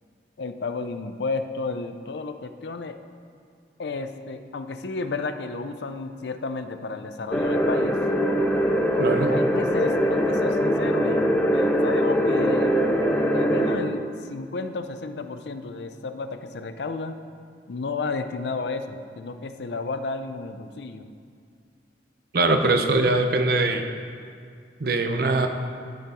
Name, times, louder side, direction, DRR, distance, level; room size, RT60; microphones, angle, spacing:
voice 1, 0.4-3.0 3.8-8.0 9.3-12.8 13.3-17.2 17.7-21.0, left 3 dB, 75° left, 9 dB, 0.5 m, -32 dB
sound 1, 7.3-13.8, equal, 10° left, 0.6 m, -22 dB
voice 2, 9.0-9.3 22.3-23.8 24.8-25.5, right 2 dB, 60° right, 6 dB, 0.7 m, -22 dB
12.0 x 4.7 x 5.2 m, 2.2 s
head